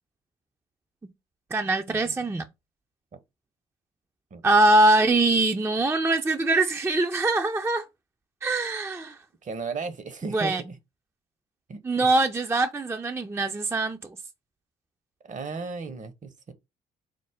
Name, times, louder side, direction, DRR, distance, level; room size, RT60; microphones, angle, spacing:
voice 1, 1.5-2.4 4.4-7.9 8.4-9.2 10.3-10.6 11.8-14.1, right 2 dB, 15° right, 0.4 m, -23 dB
voice 2, 9.4-10.8 11.7-12.1 15.2-16.5, right 4 dB, 40° right, 0.8 m, -35 dB
5.0 x 2.0 x 3.4 m
hypercardioid pair, 50°, 19 cm